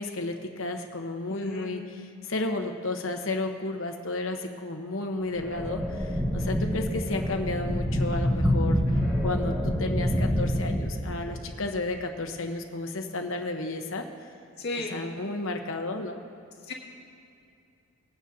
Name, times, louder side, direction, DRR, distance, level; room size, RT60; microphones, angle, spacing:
voice 1, 0.0-1.8 2.3-8.8 9.2-14.1 14.7-16.2, left 2 dB, 65° left, 5 dB, 1.0 m, -32 dB
voice 2, 1.3-1.8 14.6-15.0 16.7-16.8, left 2 dB, 50° left, -3 dB, 1.8 m, -34 dB
sound 1, 5.3-11.5, equal, 15° right, 1.4 m, -27 dB
20.5 x 9.0 x 2.8 m, 2.5 s
head